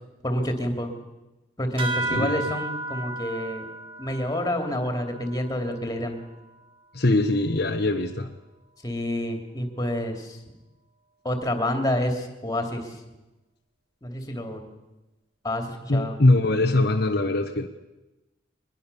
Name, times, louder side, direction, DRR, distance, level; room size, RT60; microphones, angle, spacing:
voice 1, 0.2-0.9 1.6-3.7 4.0-6.2 8.8-10.4 11.2-12.9 14.0-14.6 15.4-16.2, left 1 dB, 20° left, 5 dB, 2.9 m, -28 dB
sound 1, 1.8-6.7, right 2 dB, 30° right, 2.2 m, -34 dB
voice 2, 2.1-2.4 6.9-8.3 15.9-17.7, left 2 dB, 55° left, 3 dB, 1.2 m, -22 dB
23.0 x 21.0 x 7.0 m, 1.0 s
head